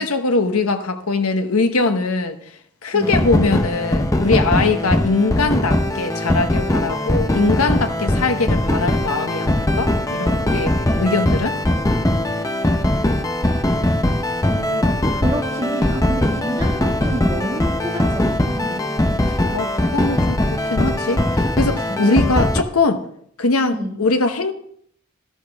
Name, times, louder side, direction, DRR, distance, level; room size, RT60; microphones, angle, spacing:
voice 1, 0.0-2.4 2.8-11.6 19.2-23.0 23.4-24.5, left 3 dB, 90° left, 1.0 m, -21 dB
sound 1, 3.0-22.6, left 1 dB, 15° left, 0.6 m, -20 dB
voice 2, 14.4-18.9 21.9-22.2 23.7-24.0, right 1 dB, 20° right, 1.9 m, -29 dB
13.0 x 12.5 x 3.5 m
head